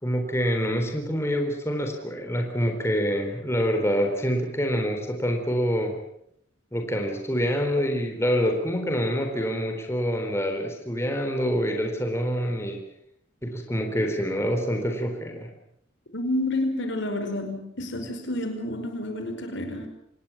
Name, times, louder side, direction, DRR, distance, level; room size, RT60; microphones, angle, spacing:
voice 1, 0.0-6.0 6.7-12.8 13.4-15.5, equal, 15° left, 3 dB, 3.9 m, -26 dB
voice 2, 16.1-19.9, left 1 dB, 70° left, 6 dB, 5.3 m, -29 dB
26.0 x 20.0 x 7.4 m, 0.72 s
head